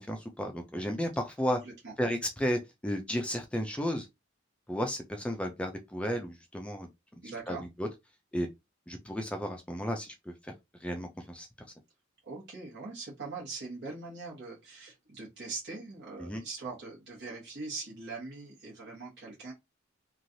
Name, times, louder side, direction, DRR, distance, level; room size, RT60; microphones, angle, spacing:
voice 1, 0.1-1.6 2.0-4.1 4.7-6.9 7.5-7.9 8.3-8.5 8.9-10.3 10.8-11.5 16.2-16.4, equal, 5° left, 0.3 m, -33 dB
voice 2, 1.4-1.9 7.2-7.6 12.3-19.5, right 3 dB, 55° right, 1.2 m, -42 dB
3.1 x 2.4 x 2.6 m
head